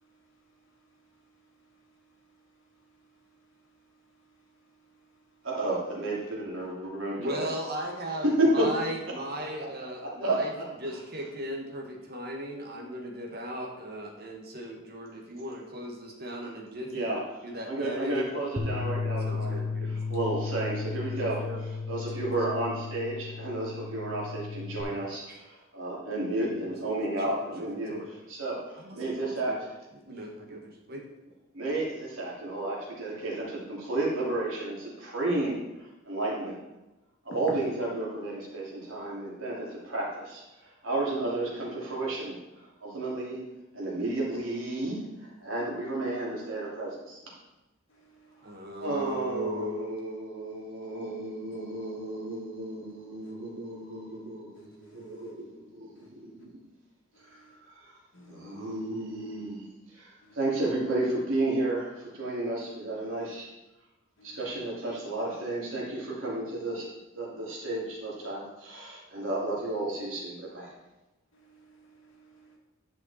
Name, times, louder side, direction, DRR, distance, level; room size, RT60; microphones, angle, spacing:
voice 1, 5.4-7.5 8.4-8.7 10.2-10.9 16.9-17.2 17.7-21.4 21.9-27.9 28.3-29.7 31.5-35.6 36.1-36.6 37.2-42.4 42.8-43.4 43.7-47.2 48.8-56.6 57.3-57.4 57.8-57.9 58.3-59.6 59.9-63.5 64.2-66.9 67.1-70.7, right 2 dB, 80° right, -4 dB, 3.0 m, -32 dB
voice 2, 7.2-8.3 8.5-10.5 10.8-18.4 19.2-19.9 21.1-21.6 25.3-25.4 26.5-26.6 27.2-27.3 27.9-28.1 28.8-29.6 30.1-31.0 48.4-50.7, equal, 50° right, 0 dB, 1.7 m, -37 dB
Bass guitar, 18.6-24.8, left 4 dB, 20° right, 1.3 m, -34 dB
voice 3, 54.5-55.3 56.0-56.1 58.1-58.8 64.2-64.4 71.3-72.6, right 1 dB, 70° left, -1 dB, 2.1 m, -55 dB
10.5 x 5.8 x 4.3 m, 1.0 s
head